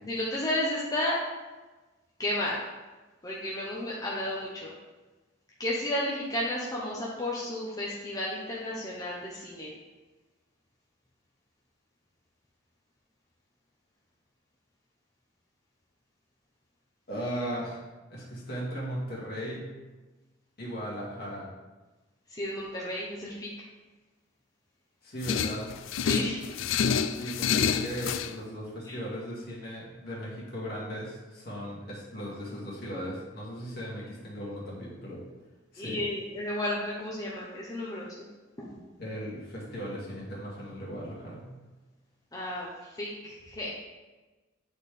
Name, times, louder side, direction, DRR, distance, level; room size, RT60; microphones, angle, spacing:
voice 1, 0.0-1.2 2.2-2.6 3.2-4.7 5.6-9.7 22.3-23.5 26.0-26.4 28.9-29.0 35.8-38.3 38.6-38.8 42.3-42.7 43.0-43.7, left 1 dB, 20° left, -5 dB, 0.8 m, -32 dB
voice 2, 17.1-17.8 18.1-19.7 20.6-21.5 25.0-25.7 27.0-35.2 35.7-36.0 39.0-41.5, equal, 55° left, -6 dB, 2.1 m, -37 dB
sound 1, 25.2-28.3, left 7 dB, 75° left, 0.3 m, -28 dB
8.5 x 4.2 x 3.4 m, 1.2 s
head